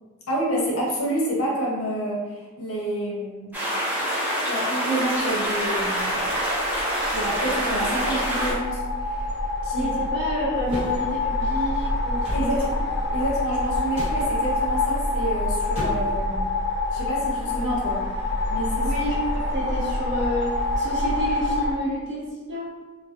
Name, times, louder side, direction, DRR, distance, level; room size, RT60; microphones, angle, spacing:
voice 1, 0.3-3.5 4.4-6.2 7.1-9.3 9.6-9.9 12.3-12.7 13.1-16.5 16.9-18.0 18.5-18.9, right 1 dB, 75° left, -4 dB, 0.7 m, -28 dB
sound 1, 3.5-8.5, equal, 10° right, 0.5 m, -26 dB
sound 2, 5.8-21.7, left 2 dB, 50° left, 0.4 m, -26 dB
voice 2, 9.7-12.7 18.8-22.7, equal, 55° right, -7 dB, 0.8 m, -29 dB
Bag Of Flour Dropped On Counter Top, 10.7-11.0 12.2-12.5 13.9-14.2 15.7-16.2, left 1 dB, 30° right, 1.1 m, -32 dB
2.4 x 2.2 x 2.5 m, 1.3 s
head